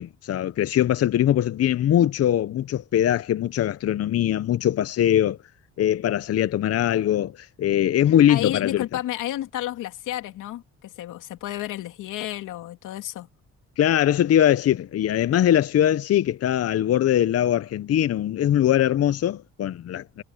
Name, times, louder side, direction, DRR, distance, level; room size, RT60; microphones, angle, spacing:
voice 1, 0.0-5.4 5.8-8.8 13.8-20.2, left 11 dB, 55° left, 0.6 m, -21 dB
voice 2, 8.3-13.3, left 13 dB, 90° left, 3.0 m, -31 dB
cardioid pair, 90°, 30 cm